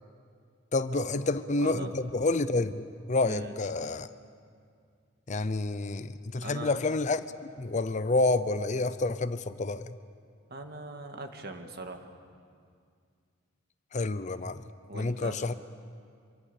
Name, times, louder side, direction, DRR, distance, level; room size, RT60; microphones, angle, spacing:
voice 1, 0.7-4.1 5.3-9.9 13.9-14.6 14.9-15.5, left 2 dB, 35° left, 13 dB, 0.6 m, -29 dB
voice 2, 1.6-1.9 3.2-3.6 6.4-6.8 10.5-12.1 14.9-15.4, right 2 dB, 50° right, 5 dB, 1.9 m, -41 dB
26.0 x 24.0 x 7.0 m, 2.2 s
head